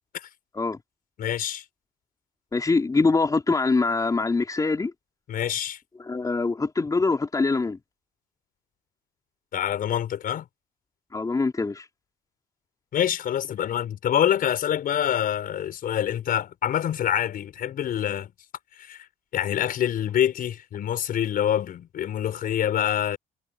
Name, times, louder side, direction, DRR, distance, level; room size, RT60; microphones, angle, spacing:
voice 1, 1.2-1.6 5.3-5.8 9.5-10.5 12.9-18.3 18.8-19.1 19.3-23.2, left 10 dB, 60° left, 5.4 m, -26 dB
voice 2, 2.5-4.9 6.0-7.8 11.1-11.8, left 3 dB, 20° left, 4.2 m, -24 dB
cardioid pair, 110°, 17 cm